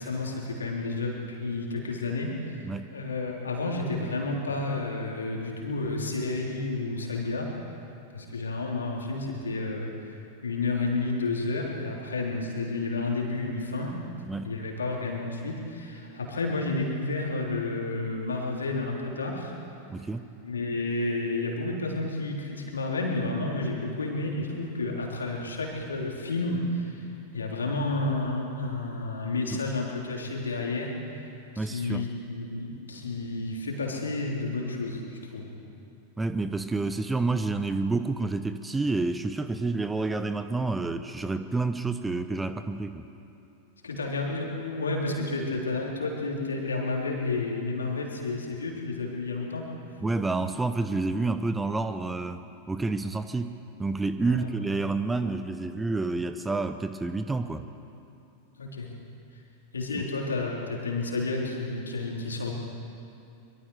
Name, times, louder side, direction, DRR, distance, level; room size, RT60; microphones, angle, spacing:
voice 1, 0.0-2.6 2.9-7.5 8.1-10.1 10.4-14.0 14.4-19.5 20.4-27.1 27.3-31.2 31.6-35.0 35.3-35.5 43.8-49.7 54.3-54.4 58.6-58.9 59.7-62.5, left 3 dB, 70° left, 0 dB, 3.4 m, -31 dB
voice 2, 19.9-20.3 31.6-32.0 36.2-43.0 50.0-52.4 52.7-53.5 53.8-57.7, right 3 dB, 10° right, 10 dB, 0.8 m, -29 dB
24.0 x 23.0 x 4.8 m, 2.7 s
figure-of-eight pair, 90°, 0 cm